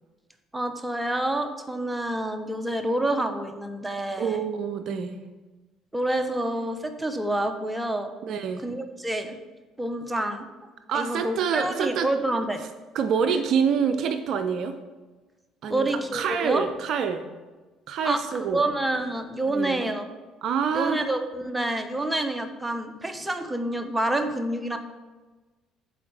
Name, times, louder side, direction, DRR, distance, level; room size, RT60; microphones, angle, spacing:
voice 1, 0.5-4.4 5.9-8.1 8.6-9.4 9.8-10.5 10.9-12.6 15.7-16.7 18.0-20.0 20.7-24.8, right 1 dB, 10° right, 7 dB, 0.7 m, -28 dB
voice 2, 4.2-5.2 8.2-8.6 10.9-12.1 12.9-14.8 15.6-17.2 17.9-18.6 19.5-19.9 20.4-21.0, right 7 dB, 60° right, 8 dB, 0.4 m, -26 dB
7.8 x 4.0 x 3.4 m, 1.2 s
hypercardioid pair, 55°, 0 cm